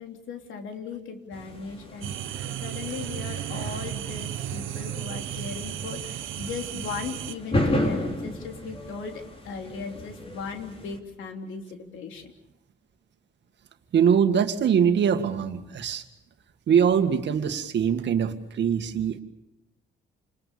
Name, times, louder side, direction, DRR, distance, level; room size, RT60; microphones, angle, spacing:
voice 1, 0.0-2.1 2.4-12.3, left 5 dB, 80° left, 5 dB, 3.3 m, -37 dB
sound 1, 1.3-11.0, left 1 dB, 30° left, 4.4 m, -34 dB
sound 2, 2.0-7.3, right 12 dB, 80° right, 1.2 m, -34 dB
voice 2, 13.9-16.0 16.7-19.2, right 7 dB, 65° right, 8 dB, 2.0 m, -22 dB
28.5 x 21.0 x 7.0 m, 0.85 s
cardioid pair, 90°, 20 cm